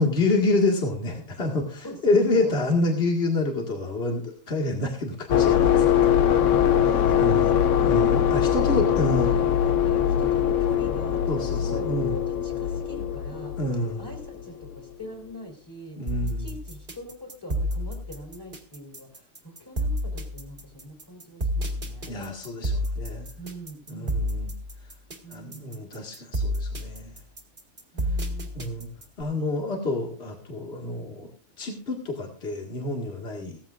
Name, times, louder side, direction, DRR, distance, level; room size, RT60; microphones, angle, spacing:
voice 1, 0.0-5.9 6.9-9.4 11.3-12.1 13.6-14.1 16.0-16.5 22.1-23.3 23.9-24.5 25.3-27.1 28.5-28.9 29.2-31.3 31.6-33.6, left 2 dB, 50° left, 0 dB, 2.3 m, -27 dB
sound 1, 5.3-14.8, left 9 dB, 70° left, 1.1 m, -22 dB
voice 2, 7.1-8.0 8.5-9.4 9.8-13.6 14.0-22.1 23.4-24.2 25.2-25.8 27.1-27.3 27.9-28.5 33.4-33.6, equal, 15° left, 2 dB, 3.8 m, -42 dB
sound 2, 16.1-29.2, equal, 40° right, 2.1 m, -30 dB
17.0 x 14.5 x 2.6 m, 0.41 s
omnidirectional pair, 1.4 m